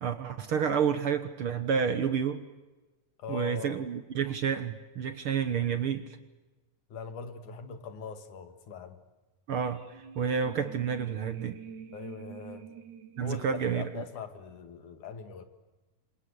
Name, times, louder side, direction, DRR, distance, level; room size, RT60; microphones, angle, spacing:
voice 1, 0.0-2.4 3.3-6.2 9.5-9.8 10.2-11.6 13.2-14.0, right 7 dB, 55° right, 11 dB, 1.7 m, -29 dB
voice 2, 3.2-3.8 6.9-9.0 11.9-12.7 13.2-15.4, left 6 dB, 80° left, 9 dB, 3.5 m, -41 dB
sound 1, 9.6-14.4, right 7 dB, 75° right, 3.3 m, -47 dB
27.5 x 25.5 x 8.2 m, 1.1 s
omnidirectional pair, 3.5 m